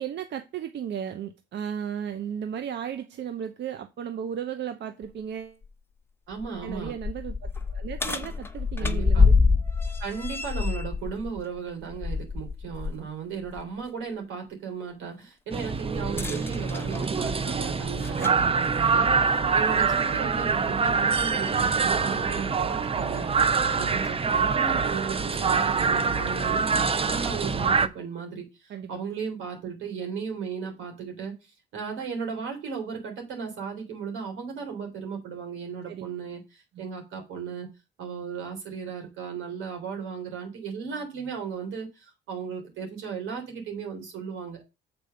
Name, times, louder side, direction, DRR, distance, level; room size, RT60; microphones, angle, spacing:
voice 1, 0.0-5.6 6.6-9.3 18.2-18.4 18.8-18.9 28.7-28.9 35.9-36.1 36.7-36.8, right 8 dB, 60° right, 0.7 m, -35 dB
sound 1, 5.0-5.1 5.6-5.7 6.3-13.0 13.4-13.6 16.0-18.4 19.4-19.5 20.3-20.4, left 4 dB, 10° left, 0.9 m, -26 dB
voice 2, 6.3-7.0 8.8-9.3 10.0-37.7 38.0-44.6, right 6 dB, 90° right, 3.4 m, -36 dB
sound 2, 15.5-27.9, right 5 dB, 30° right, 0.6 m, -25 dB
6.9 x 4.6 x 6.5 m
cardioid pair, 90°, 20 cm